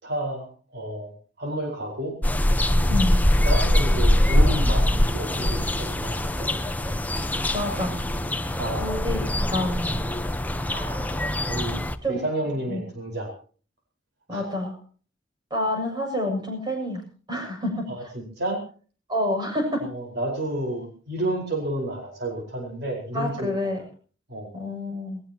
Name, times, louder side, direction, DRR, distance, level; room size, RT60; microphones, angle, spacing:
voice 1, 0.0-1.1 1.4-2.1 3.4-6.6 8.5-9.0 10.7-11.8 12.1-13.3 14.3-14.4 17.9-18.6 19.8-23.7 24.3-24.5, right 1 dB, 55° right, 0 dB, 4.9 m, -31 dB
sound 1, 2.2-11.9, left 1 dB, 10° left, 0.9 m, -23 dB
voice 2, 7.5-8.0 8.8-9.9 12.0-12.2 12.5-12.8 14.3-14.8 15.5-17.9 19.1-19.9 23.1-23.8 24.5-25.2, left 1 dB, 20° right, 2 dB, 7.2 m, -28 dB
21.0 x 19.0 x 3.0 m, 0.41 s
head